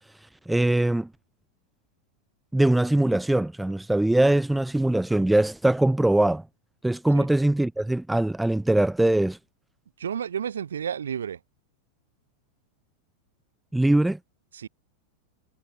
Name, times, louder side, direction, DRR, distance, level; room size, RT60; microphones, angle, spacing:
voice 1, 0.5-1.1 2.5-6.4 6.8-9.4 13.7-14.2, right 1 dB, 5° right, 0.6 m, -22 dB
voice 2, 10.0-11.4 14.5-14.7, right 8 dB, 65° right, 2.1 m, -31 dB
figure-of-eight pair, 90°, 0 cm